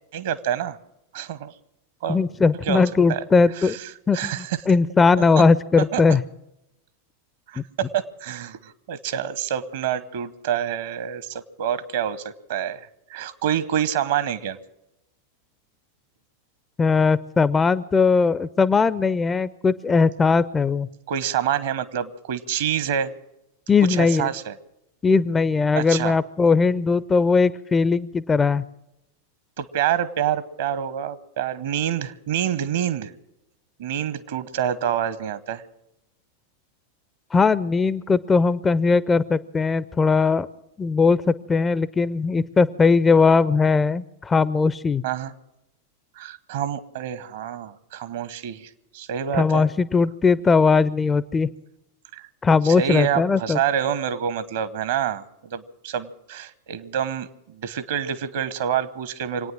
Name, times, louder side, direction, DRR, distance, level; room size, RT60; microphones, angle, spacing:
voice 1, 0.1-0.8 1.1-1.5 2.0-2.2 2.6-2.8 3.1-3.2 3.6-4.6 5.4-5.5 5.9-6.0 7.5-14.6 21.1-23.1 23.9-24.5 25.7-26.2 29.6-33.1 33.8-35.6 45.0-45.3 46.2-49.7 52.1-52.3 52.6-59.5, right 9 dB, 55° right, 16 dB, 1.0 m, -27 dB
voice 2, 2.1-3.8 4.1-6.2 7.6-7.7 16.8-20.9 23.7-24.3 25.0-28.6 37.3-40.5 40.8-45.0 49.3-51.5 52.4-53.6, left 4 dB, 15° left, 18 dB, 0.5 m, -19 dB
25.0 x 9.3 x 6.2 m, 0.86 s
figure-of-eight pair, 90°, 0 cm